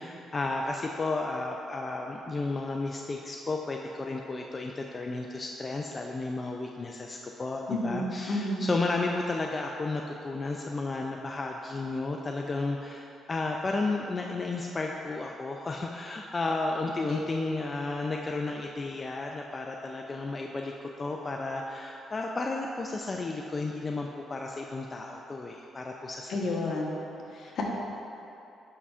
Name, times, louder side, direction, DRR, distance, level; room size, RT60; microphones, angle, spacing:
voice 1, 0.0-26.5, left 3 dB, 30° left, 1 dB, 0.3 m, -33 dB
voice 2, 7.7-8.6 17.1-17.2 26.3-27.0 27.3-27.6, left 2 dB, 65° left, -2 dB, 1.0 m, -31 dB
8.4 x 5.5 x 2.4 m, 2.8 s
cardioid pair, 90°, 0 cm